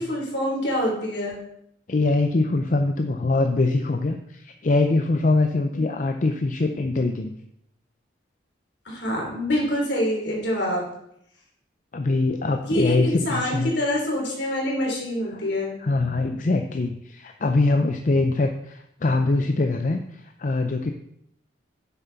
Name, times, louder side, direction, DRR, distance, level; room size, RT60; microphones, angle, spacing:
voice 1, 0.0-1.4 5.7-5.8 8.8-10.8 12.6-15.7, left 1 dB, 65° left, -2 dB, 3.3 m, -26 dB
voice 2, 1.9-7.3 11.9-13.7 15.3-15.5 15.8-20.9, left 2 dB, 45° left, 6 dB, 0.5 m, -23 dB
10.0 x 7.2 x 4.0 m, 0.75 s
head